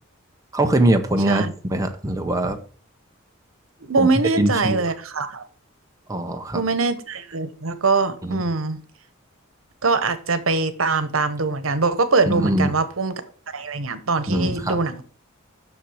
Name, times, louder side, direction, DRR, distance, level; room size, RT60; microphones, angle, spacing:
voice 1, 0.5-1.4 1.7-2.6 4.0-4.1 4.4-4.8 6.1-6.6 8.2-8.4 12.3-12.7 14.3-14.8, right 1 dB, 15° right, 5 dB, 0.9 m, -22 dB
voice 2, 3.9-5.5 6.5-8.8 9.8-13.1 13.5-15.0, right 4 dB, 85° right, 12 dB, 1.1 m, -23 dB
7.3 x 6.4 x 6.4 m, 0.43 s
head